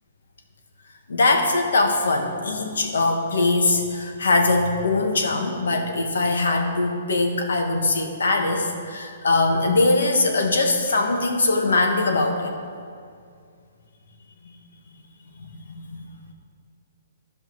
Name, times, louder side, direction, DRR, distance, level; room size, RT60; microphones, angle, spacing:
voice 1, 1.1-12.5 15.4-16.0, left 2 dB, 85° left, 3 dB, 1.4 m, -22 dB
13.0 x 5.3 x 4.6 m, 2.2 s
hypercardioid pair, 155°, 0 cm